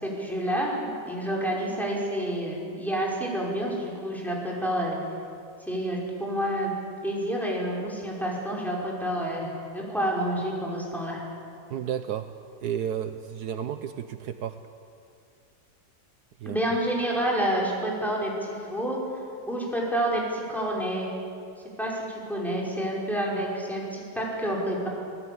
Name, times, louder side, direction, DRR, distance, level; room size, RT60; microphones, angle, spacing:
voice 1, 0.0-5.0 5.7-6.7 7.0-11.2 16.4-19.0 19.5-21.1 21.8-24.9, right 1 dB, ahead, -4 dB, 5.5 m, -29 dB
voice 2, 11.7-12.3 12.6-14.6 16.4-16.6, right 9 dB, 75° right, 9 dB, 1.3 m, -32 dB
27.0 x 17.5 x 8.8 m, 2.5 s
omnidirectional pair, 1.8 m